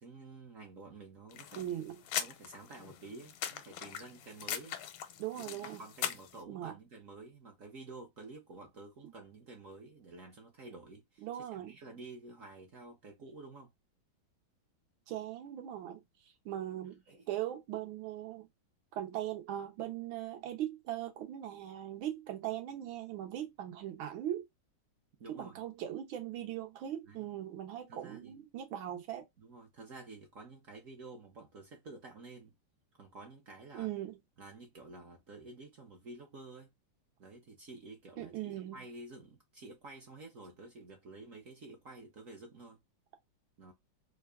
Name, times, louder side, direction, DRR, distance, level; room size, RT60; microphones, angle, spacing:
voice 1, 0.0-1.8 2.1-4.8 5.4-13.7 17.1-17.3 25.2-25.6 27.1-27.3 27.9-28.4 29.4-32.5 32.9-33.9 34.4-36.7 37.2-42.8 43.6-43.7, right 3 dB, 55° right, 1.0 m, -51 dB
sound 1, 1.3-6.4, left 10 dB, 85° left, 1.5 m, -41 dB
voice 2, 1.6-2.0 5.2-5.8 6.5-6.8 11.2-11.7 15.1-16.0 16.5-17.0 17.3-18.5 18.9-24.5 25.3-29.2 33.7-34.2 38.2-38.8, right 12 dB, 80° right, 1.6 m, -39 dB
3.8 x 2.3 x 3.3 m
omnidirectional pair, 2.2 m